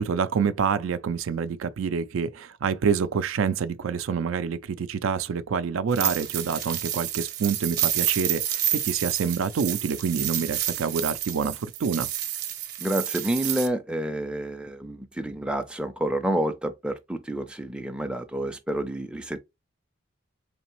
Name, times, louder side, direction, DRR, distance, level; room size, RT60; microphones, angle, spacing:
voice 1, 0.0-12.1, right 6 dB, 80° right, 0.4 m, -27 dB
sound 1, 5.9-13.7, right 11 dB, 50° right, 0.7 m, -29 dB
voice 2, 12.8-19.4, right 1 dB, 5° right, 0.4 m, -29 dB
4.0 x 3.4 x 3.0 m
head